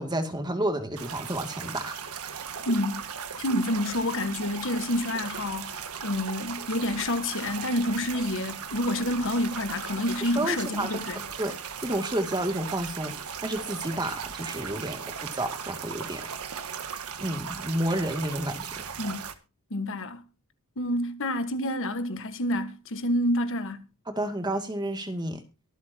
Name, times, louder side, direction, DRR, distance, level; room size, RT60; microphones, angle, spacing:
voice 1, 0.0-2.0 10.4-11.0 11.4-11.6 11.8-16.3 17.2-18.8 24.1-25.4, right 1 dB, 20° right, 2.3 m, -30 dB
sound 1, 1.0-19.3, right 7 dB, 90° right, 1.6 m, -37 dB
voice 2, 2.6-3.0 3.4-11.2 19.0-19.2 19.7-20.2 20.8-23.8, left 1 dB, 60° left, 1.4 m, -28 dB
23.5 x 8.3 x 2.8 m
head